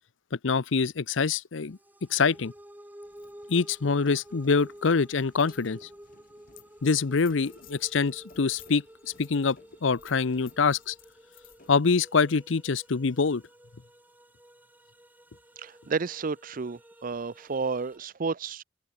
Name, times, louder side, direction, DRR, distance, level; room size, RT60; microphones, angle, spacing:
voice 1, 0.4-1.8 2.1-2.5 3.5-5.8 6.8-8.8 9.2-10.9 11.7-13.4, left 5 dB, 70° left, 0.7 m, -25 dB
sound 1, 1.7-18.0, equal, 10° right, 2.2 m, -52 dB
sound 2, 3.0-13.0, left 6 dB, 45° left, 3.5 m, -56 dB
voice 2, 15.6-18.6, right 4 dB, 45° right, 0.5 m, -31 dB
head